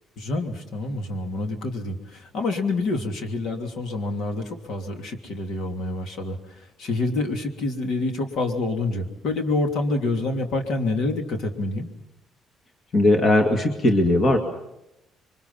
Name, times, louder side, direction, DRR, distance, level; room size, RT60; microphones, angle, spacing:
voice 1, 0.2-6.4 6.8-11.9, left 2 dB, 55° left, 4 dB, 3.1 m, -27 dB
voice 2, 12.9-14.4, left 1 dB, 30° left, 4 dB, 2.1 m, -18 dB
28.0 x 24.0 x 5.8 m, 0.88 s
cardioid pair, 175°, 0 cm